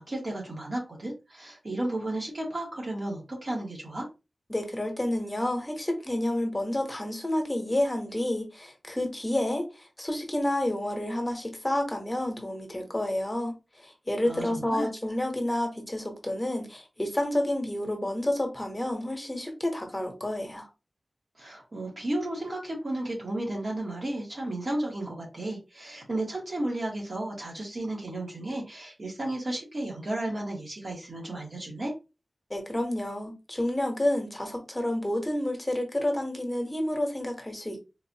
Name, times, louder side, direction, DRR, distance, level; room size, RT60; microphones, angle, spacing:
voice 1, 0.0-4.0 14.2-14.9 21.4-31.9, right 1 dB, 60° right, 1.7 m, -33 dB
voice 2, 4.5-20.7 32.5-37.8, left 1 dB, 20° left, 1.0 m, -30 dB
3.9 x 2.5 x 2.8 m
wide cardioid pair, 65°, 0 cm